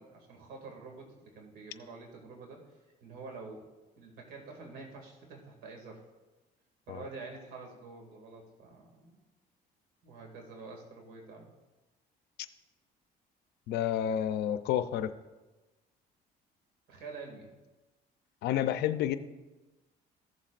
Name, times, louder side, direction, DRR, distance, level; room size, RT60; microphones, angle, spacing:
voice 1, 0.0-2.6 3.0-3.6 4.0-6.0 6.9-9.2 10.0-11.5 16.9-17.6, right 4 dB, 75° right, 1 dB, 2.3 m, -47 dB
voice 2, 13.7-15.1 18.4-19.2, left 11 dB, 80° left, 11 dB, 0.6 m, -30 dB
15.0 x 7.3 x 2.5 m, 1.1 s
cardioid pair, 110°, 17 cm